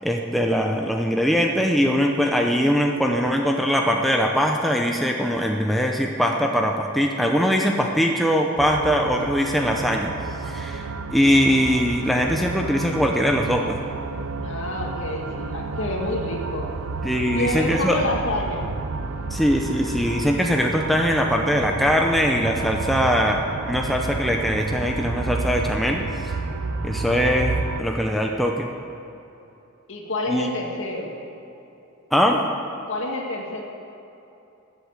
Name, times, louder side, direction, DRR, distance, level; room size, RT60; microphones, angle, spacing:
voice 1, 0.0-10.1 10.5-13.8 17.0-18.0 19.3-26.3 26.8-28.7 30.3-30.5 32.1-32.4, equal, ahead, 1 dB, 0.7 m, -21 dB
sound 1, 8.6-27.8, right 3 dB, 70° right, 0.6 m, -30 dB
voice 2, 14.4-16.8 17.3-18.7 29.9-31.1 32.9-33.6, left 1 dB, 60° left, 0 dB, 2.2 m, -28 dB
13.5 x 8.4 x 8.1 m, 2.9 s
head